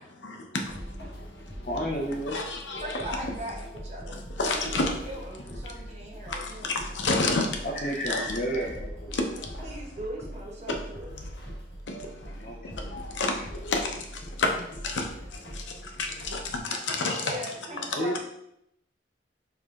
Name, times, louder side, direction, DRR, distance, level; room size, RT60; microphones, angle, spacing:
sound 1, 0.6-16.6, equal, 65° left, 1.3 m, -42 dB
voice 1, 1.7-2.4 2.7-2.8 5.4-5.5 7.6-9.1 12.1-13.0 13.3-13.4 17.9-18.2, equal, 45° left, -4 dB, 0.6 m, -32 dB
voice 2, 2.3-3.1 4.4-4.9 6.3-7.5 8.1-8.2 9.1-9.2 11.9-12.1 12.9-13.4 13.6-13.9 14.4-14.5 14.8-15.1 16.0-16.4 16.6-17.4, left 3 dB, 90° left, 3 dB, 0.7 m, -28 dB
voice 3, 2.8-6.8 9.6-11.1 17.2-18.2, right 1 dB, 40° right, -2 dB, 0.8 m, -39 dB
4.7 x 3.7 x 2.4 m, 0.76 s
head